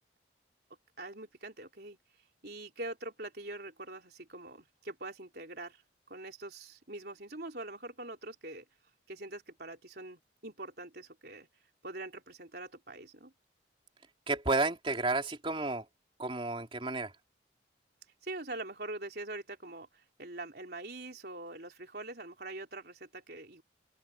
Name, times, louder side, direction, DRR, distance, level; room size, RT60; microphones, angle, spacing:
voice 1, 1.0-2.0 2.4-5.8 6.1-8.6 9.1-11.5 11.8-13.3 18.2-23.6, right 2 dB, 55° right, 4.1 m, -44 dB
voice 2, 14.3-15.8 16.2-17.1, right 3 dB, 30° right, 3.3 m, -31 dB
open air
head